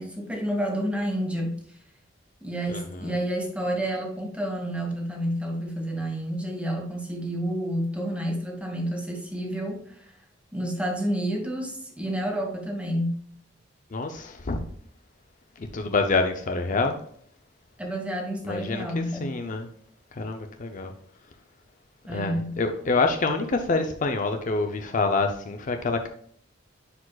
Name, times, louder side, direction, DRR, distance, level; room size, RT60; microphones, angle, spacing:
voice 1, 0.0-1.6 2.4-10.1 10.5-13.1 17.8-19.3 22.0-22.5, equal, 5° right, 0 dB, 1.6 m, -29 dB
voice 2, 2.7-3.1 13.9-14.7 15.6-17.0 18.4-19.7 20.1-20.9 22.1-26.1, left 3 dB, 40° left, 6 dB, 0.5 m, -27 dB
10.0 x 4.9 x 2.3 m, 0.62 s
head